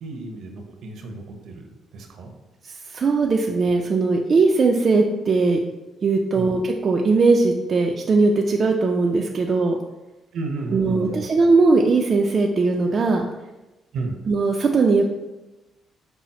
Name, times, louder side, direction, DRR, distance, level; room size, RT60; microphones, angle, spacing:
voice 1, 0.0-2.3 6.3-6.5 10.3-11.3 13.9-14.2, right 3 dB, 70° right, 3 dB, 0.7 m, -32 dB
voice 2, 2.9-5.6 6.0-9.8 10.7-13.2 14.3-15.1, right 3 dB, 45° right, 1 dB, 0.4 m, -19 dB
5.5 x 2.0 x 4.1 m, 1.0 s
cardioid pair, 90°, 0 cm